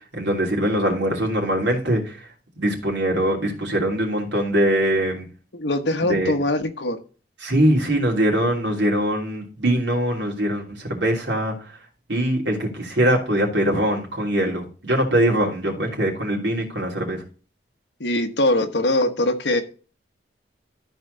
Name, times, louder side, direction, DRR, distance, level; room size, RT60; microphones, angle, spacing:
voice 1, 0.1-2.2 2.6-5.3 6.1-6.3 7.4-11.7 12.1-17.2, right 1 dB, 85° right, 0 dB, 3.0 m, -22 dB
voice 2, 5.5-7.0 18.0-19.6, left 1 dB, 70° left, 7 dB, 1.2 m, -22 dB
13.5 x 4.5 x 3.9 m, 0.37 s
head